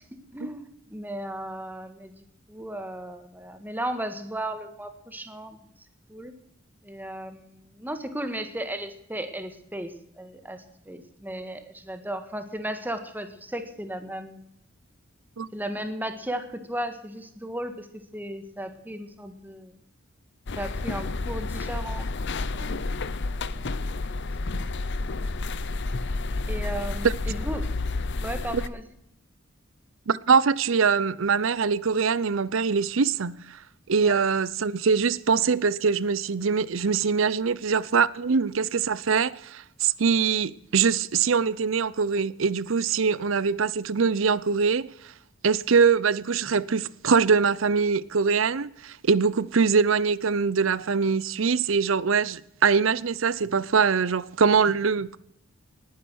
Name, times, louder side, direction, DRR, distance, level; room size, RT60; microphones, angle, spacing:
voice 1, 0.0-5.6 6.1-6.3 6.8-14.4 15.5-17.9 18.1-19.8 20.6-22.8 23.5-23.7 26.5-27.7 28.2-28.8 34.0-34.2, right 1 dB, 10° right, 1.6 m, -35 dB
sound 1, 20.5-28.7, left 3 dB, 60° left, 0.7 m, -30 dB
voice 2, 30.1-33.6 33.9-44.9 45.4-55.2, right 5 dB, 70° right, 0.6 m, -23 dB
19.5 x 9.7 x 6.3 m
head